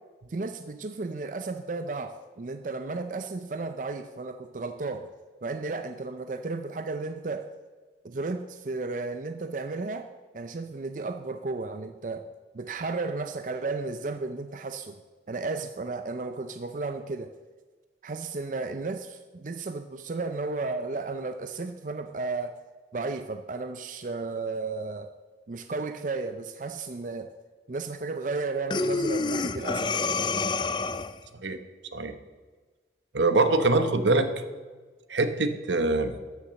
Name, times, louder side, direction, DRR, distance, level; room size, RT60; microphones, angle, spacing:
voice 1, 0.3-5.1 5.4-7.5 8.0-10.1 10.3-12.3 12.5-15.0 15.3-17.3 18.0-22.6 22.9-25.1 25.5-27.3 27.7-29.9, right 3 dB, 45° right, 8 dB, 0.5 m, -33 dB
Breathing, 28.7-31.3, left 4 dB, 25° left, 0.4 m, -28 dB
voice 2, 33.1-34.3 35.1-36.1, right 2 dB, 80° right, 9 dB, 1.0 m, -23 dB
13.0 x 7.2 x 6.4 m, 1.4 s
head